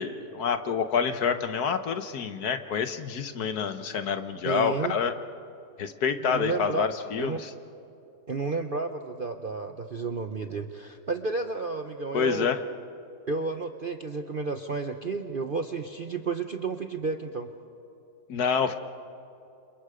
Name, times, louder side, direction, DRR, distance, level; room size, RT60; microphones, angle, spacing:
voice 1, 0.0-5.1 5.8-7.5 12.1-12.6 18.3-18.7, left 6 dB, 60° left, 9 dB, 1.5 m, -27 dB
voice 2, 4.4-5.0 6.2-6.9 7.2-7.4 8.3-12.6 13.3-17.5, right 4 dB, 45° right, 6 dB, 0.7 m, -31 dB
29.5 x 27.5 x 5.0 m, 2.7 s
omnidirectional pair, 1.9 m